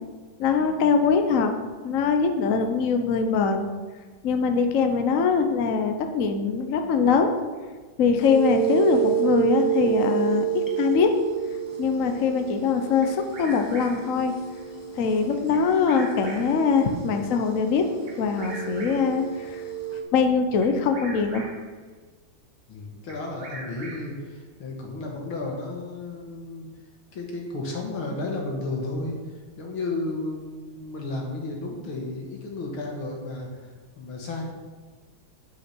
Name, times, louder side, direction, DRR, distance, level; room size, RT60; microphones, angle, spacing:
voice 1, 0.4-1.5 1.8-3.7 4.2-7.3 8.0-11.1 11.8-14.3 14.9-17.9 18.2-19.6 20.1-21.5, left 5 dB, 55° left, 6 dB, 1.0 m, -22 dB
sound 1, 8.2-20.0, right 10 dB, 15° left, 0.7 m, -30 dB
Bird vocalization bird call bird song, 13.0-14.2 15.5-16.7 18.1-19.2 20.6-21.7 23.1-24.3, right 3 dB, 65° right, 1.9 m, -42 dB
voice 2, 22.7-26.7 27.1-29.2 29.6-33.7 34.0-34.4, left 2 dB, 80° left, 0 dB, 2.7 m, -33 dB
9.2 x 8.5 x 4.5 m, 1.4 s
omnidirectional pair, 2.3 m